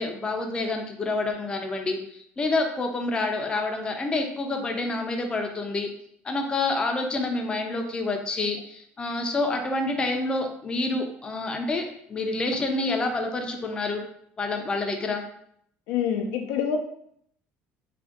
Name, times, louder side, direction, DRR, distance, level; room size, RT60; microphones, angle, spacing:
voice 1, 0.0-5.9 6.2-14.0 14.4-15.2, left 2 dB, 20° left, 3 dB, 0.4 m, -28 dB
voice 2, 15.9-16.8, left 8 dB, 90° left, 4 dB, 0.4 m, -26 dB
2.5 x 2.2 x 3.5 m, 0.69 s
cardioid pair, 135°, 5 cm